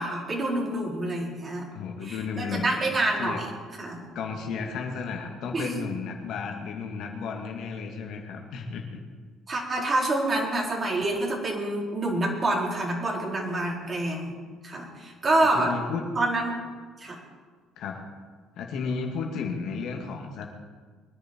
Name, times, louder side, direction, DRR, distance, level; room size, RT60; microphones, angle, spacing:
voice 1, 0.0-1.7 2.0-3.5 3.8-4.0 5.5-5.7 9.5-15.7 16.1-16.6 17.0-17.2, right 2 dB, 35° right, -1 dB, 4.4 m, -27 dB
voice 2, 1.7-2.7 3.2-3.4 4.1-9.0 15.5-16.0 17.8-18.0 18.6-20.5, left 5 dB, 65° left, 2 dB, 2.3 m, -33 dB
23.0 x 10.5 x 4.7 m, 1.5 s
hypercardioid pair, 60°, 0 cm